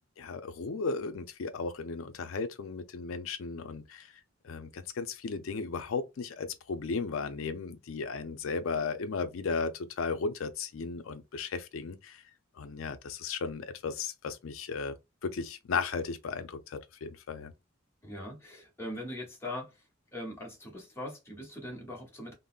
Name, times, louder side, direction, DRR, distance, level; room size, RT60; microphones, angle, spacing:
voice 1, 0.2-4.1 4.4-12.2 12.6-14.9 15.2-17.5, left 4 dB, 85° left, 0.5 m, -35 dB
voice 2, 18.0-19.7 20.1-22.3, left 1 dB, 10° left, 0.9 m, -41 dB
3.7 x 2.0 x 2.3 m
head